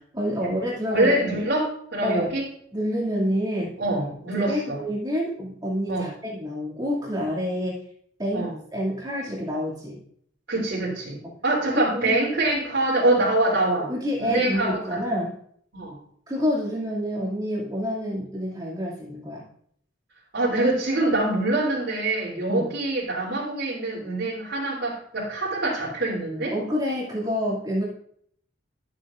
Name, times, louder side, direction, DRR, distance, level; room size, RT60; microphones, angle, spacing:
voice 1, 0.1-1.4 2.0-2.3 2.7-3.7 4.3-7.8 8.2-10.0 11.7-12.2 13.9-15.3 16.3-19.4 22.5-22.7 26.5-27.9, equal, 20° right, -4 dB, 2.4 m, -28 dB
voice 2, 0.9-2.4 3.8-4.8 5.9-6.1 8.3-8.5 10.5-13.9 14.2-15.0 15.7-15.9 20.3-26.5, right 2 dB, 65° right, -8 dB, 3.2 m, -25 dB
12.5 x 8.0 x 2.5 m, 0.64 s
head